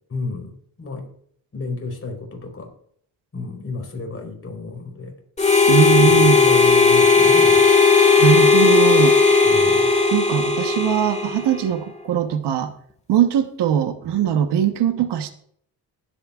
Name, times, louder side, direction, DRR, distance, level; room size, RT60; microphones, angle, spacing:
voice 1, 0.1-0.5 0.8-1.1 1.5-2.7 3.3-5.1 6.0-7.6 9.4-9.9, left 3 dB, 30° left, 2 dB, 4.1 m, -31 dB
Harmonica, 5.4-11.7, left 4 dB, 15° left, 1.7 m, -15 dB
voice 2, 5.7-6.4 8.2-9.2 10.1-12.7 13.1-15.3, right 9 dB, 70° right, 9 dB, 1.1 m, -20 dB
20.0 x 8.6 x 2.4 m, 0.64 s
cardioid pair, 110°, 42 cm